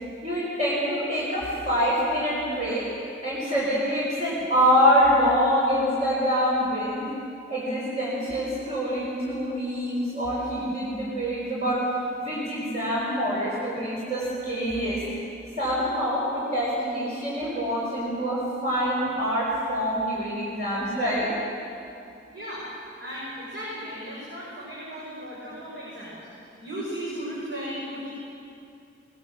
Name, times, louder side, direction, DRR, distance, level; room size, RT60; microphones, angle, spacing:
voice 1, 0.2-2.9 3.2-7.1 7.5-11.9 12.2-15.0 15.6-21.3, equal, 35° right, -7 dB, 5.0 m, -25 dB
voice 2, 22.3-22.7 23.0-26.2 26.6-28.1, equal, 60° right, -7 dB, 6.2 m, -36 dB
22.5 x 20.5 x 7.7 m, 2.6 s
head